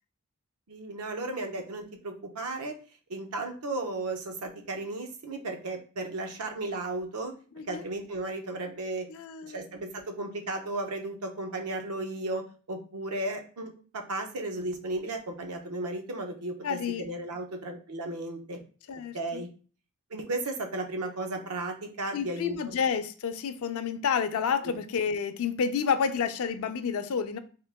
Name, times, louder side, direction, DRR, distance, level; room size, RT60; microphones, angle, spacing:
voice 1, 0.7-2.7 3.1-7.3 7.7-9.1 9.4-18.6 19.1-19.5 20.1-22.8 24.6-24.8, right 2 dB, 85° right, 0.8 m, -35 dB
voice 2, 9.1-9.6 16.6-17.0 18.9-19.4 22.1-27.4, left 6 dB, 65° left, 0.4 m, -30 dB
3.7 x 2.8 x 3.3 m
head